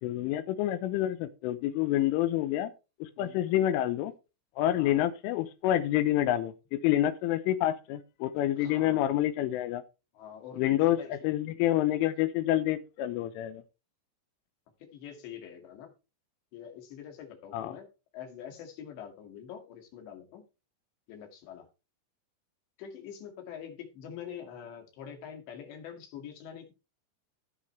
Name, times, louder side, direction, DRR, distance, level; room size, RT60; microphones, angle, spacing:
voice 1, 0.0-2.7 3.0-4.1 4.6-9.8 10.6-11.0 11.2-13.6 17.5-17.8, left 13 dB, 85° left, 3.3 m, -28 dB
voice 2, 8.6-9.1 10.1-11.6 14.8-15.9 16.5-17.9 18.1-20.4 21.1-21.7 22.8-26.8, left 8 dB, 65° left, 4.3 m, -45 dB
17.5 x 6.1 x 3.3 m
omnidirectional pair, 5.7 m